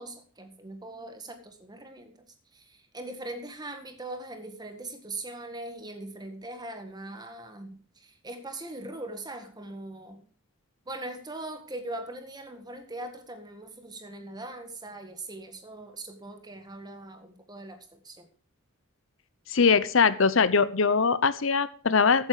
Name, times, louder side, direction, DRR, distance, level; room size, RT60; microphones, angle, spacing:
voice 1, 0.0-2.1 2.5-10.2 10.9-18.3, right 2 dB, 20° right, 7 dB, 1.8 m, -41 dB
voice 2, 19.5-22.3, left 5 dB, 70° left, 16 dB, 0.8 m, -22 dB
15.0 x 8.5 x 5.0 m, 0.42 s
head